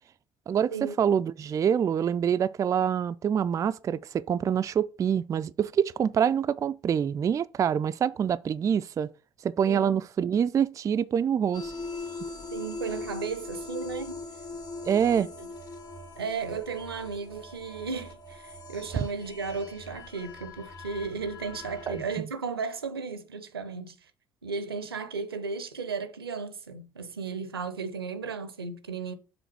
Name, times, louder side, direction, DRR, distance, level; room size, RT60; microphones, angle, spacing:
voice 1, 0.5-9.1 9.4-11.7 14.9-15.3 19.0-19.1 21.9-22.3, right 8 dB, 25° right, 0.3 m, -26 dB
voice 2, 9.7-10.0 12.5-14.2 15.2-15.5 16.2-24.1 24.4-29.1, right 5 dB, 80° right, 0.6 m, -35 dB
sound 1, 11.5-22.2, left 3 dB, 30° left, 1.7 m, -41 dB
6.9 x 3.8 x 6.1 m
figure-of-eight pair, 55°, 12 cm